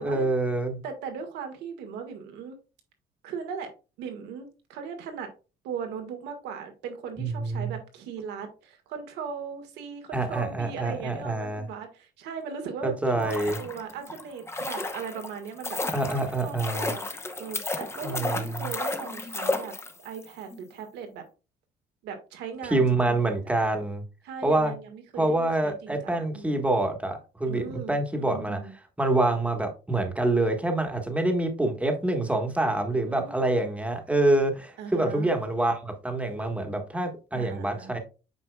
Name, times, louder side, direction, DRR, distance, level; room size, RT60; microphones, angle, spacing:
voice 1, 0.0-0.8 7.2-7.8 10.1-11.7 12.8-13.6 15.9-16.9 18.0-18.7 22.7-24.0 24.4-24.7 25.2-28.6 29.0-38.0, right 2 dB, 10° right, 4 dB, 1.4 m, -26 dB
voice 2, 0.8-2.6 3.2-3.7 4.0-5.3 5.6-15.8 16.1-17.0 17.4-19.7 20.0-21.2 22.0-23.6 24.2-26.6 27.5-28.7 32.8-33.7 34.8-35.3 37.3-37.9, right 6 dB, 85° right, 5 dB, 1.8 m, -38 dB
sound 1, 13.1-20.2 20.5-20.6, left 2 dB, 15° left, 1.0 m, -33 dB
8.1 x 5.3 x 2.3 m, 0.32 s
cardioid pair, 110°, 17 cm